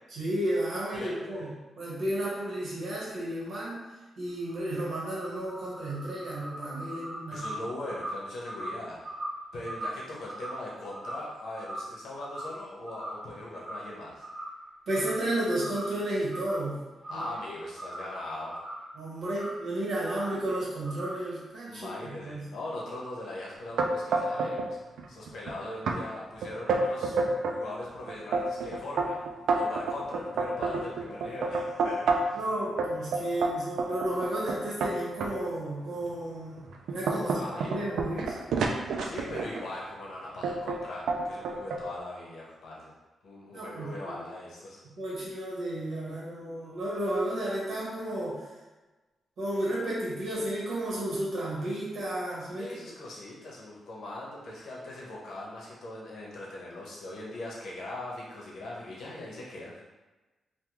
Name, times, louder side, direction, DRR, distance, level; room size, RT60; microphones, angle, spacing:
voice 1, 0.1-1.5 1.8-3.8 4.2-7.4 14.9-16.8 17.1-17.3 18.9-22.5 32.3-36.6 36.9-37.4 37.7-38.4 43.5-44.2 45.0-48.4 49.4-52.8, right 1 dB, 65° right, -7 dB, 1.3 m, -32 dB
voice 2, 0.9-1.5 7.3-9.0 9.5-14.3 17.1-18.6 21.7-24.8 25.1-32.4 37.2-37.8 39.0-42.9 43.2-44.8 52.6-59.7, left 1 dB, 70° left, -4 dB, 0.9 m, -40 dB
sound 1, 4.3-12.0 12.2-12.6 12.9-13.9 14.2-14.6 14.9-15.3 15.6-16.7 17.0-18.9 19.3-19.6 20.1-20.4 20.8-21.3, right 1 dB, 30° right, 1.3 m, -40 dB
sound 2, 23.8-24.7 25.0-25.5 25.9-26.0 26.4-27.6 28.1-32.4 32.8-35.3 36.0-36.1 36.6-39.7 40.4-40.8 41.1-41.8, right 3 dB, 85° right, 0.3 m, -29 dB
3.4 x 2.3 x 2.9 m, 1.1 s
wide cardioid pair, 155°, 0 cm